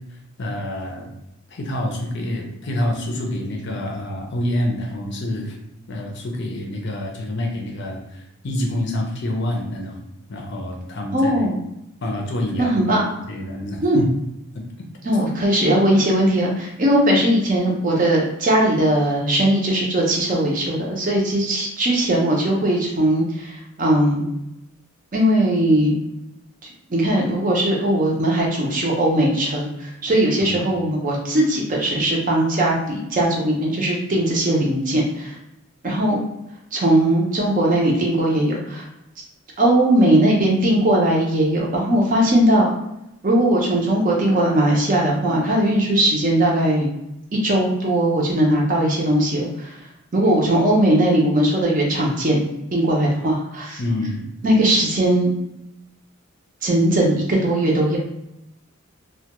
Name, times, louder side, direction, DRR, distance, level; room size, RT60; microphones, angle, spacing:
voice 1, 0.4-1.1 1.5-5.5 5.9-8.0 8.4-10.0 10.3-11.3 12.0-12.7 13.3-14.1 30.4-30.6 53.8-54.2, left 1 dB, 50° left, 0 dB, 0.5 m, -27 dB
voice 2, 11.1-11.6 12.6-13.0 13.8-14.0 15.0-24.3 25.1-26.0 26.9-35.3 35.8-36.2 36.7-38.9 39.6-42.7 43.2-46.9 47.4-49.8 50.1-52.4 52.7-53.8 54.4-55.3 56.6-58.0, right 1 dB, 35° right, -1 dB, 0.5 m, -19 dB
2.2 x 2.2 x 2.8 m, 0.85 s
head